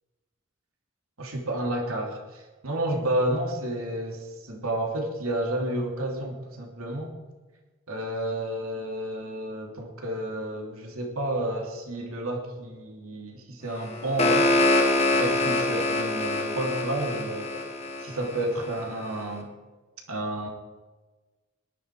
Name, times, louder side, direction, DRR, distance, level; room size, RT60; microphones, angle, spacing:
voice 1, 1.2-7.1 7.9-14.6 15.2-17.6 18.0-19.5 20.1-20.5, right 1 dB, 90° right, 1 dB, 3.1 m, -31 dB
sound 1, 13.8-18.8, left 2 dB, 30° left, 1.6 m, -25 dB
18.5 x 11.0 x 4.9 m, 1.2 s
head